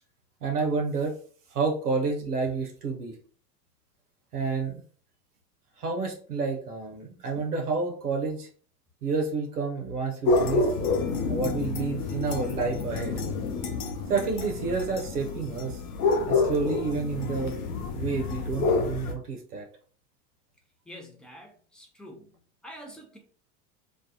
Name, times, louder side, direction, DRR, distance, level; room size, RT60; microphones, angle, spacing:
voice 1, 0.4-1.2 1.5-3.2 4.3-4.8 5.8-8.5 9.0-10.7 11.3-13.1 14.1-15.8 16.3-17.6 17.9-19.7, right 4 dB, 85° right, 0.6 m, -29 dB
sound 1, 10.2-19.1, left 3 dB, 75° left, 0.6 m, -28 dB
voice 2, 20.9-23.2, equal, ahead, 0.4 m, -47 dB
2.3 x 2.3 x 2.6 m
figure-of-eight pair, 75°, 45 cm